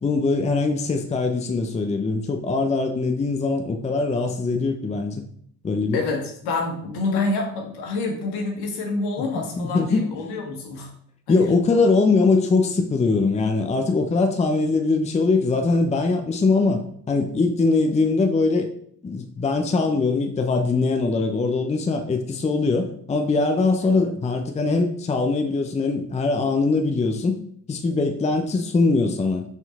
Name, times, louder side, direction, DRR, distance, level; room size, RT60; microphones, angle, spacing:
voice 1, 0.0-5.2 5.6-6.0 9.6-10.1 11.3-18.7 19.0-27.4 27.7-29.4, left 3 dB, 15° left, 5 dB, 0.7 m, -22 dB
voice 2, 5.9-10.9 11.3-11.5, left 3 dB, 65° left, 1 dB, 1.8 m, -27 dB
5.8 x 4.4 x 4.1 m, 0.65 s
hypercardioid pair, 55°, 42 cm